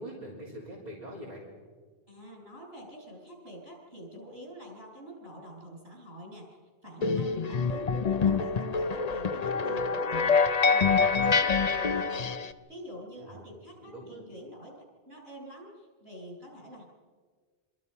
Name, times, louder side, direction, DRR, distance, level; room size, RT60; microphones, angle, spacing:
voice 1, 0.0-1.4 13.2-13.5 13.8-14.2, right 1 dB, 40° right, -5 dB, 4.2 m, -43 dB
voice 2, 2.1-6.5 6.8-16.8, equal, 65° right, -1 dB, 7.4 m, -46 dB
sound 1, 7.0-12.5, left 5 dB, 40° left, 0.8 m, -26 dB
26.0 x 25.5 x 5.6 m, 1.5 s
omnidirectional pair, 1.1 m